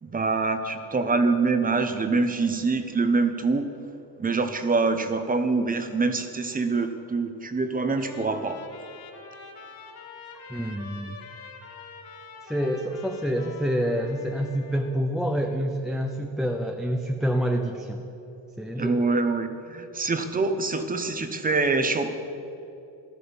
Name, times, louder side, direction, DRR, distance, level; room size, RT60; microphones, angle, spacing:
voice 1, 0.0-3.7 4.2-8.6 18.8-22.1, right 3 dB, 15° right, 9 dB, 1.0 m, -25 dB
Trumpet, 7.8-15.0, left 4 dB, 45° left, 2.9 m, -45 dB
voice 2, 10.5-11.2 12.5-18.0 18.6-19.0, equal, ahead, 3 dB, 0.6 m, -27 dB
15.5 x 12.5 x 7.1 m, 2.8 s
cardioid pair, 145°, 48 cm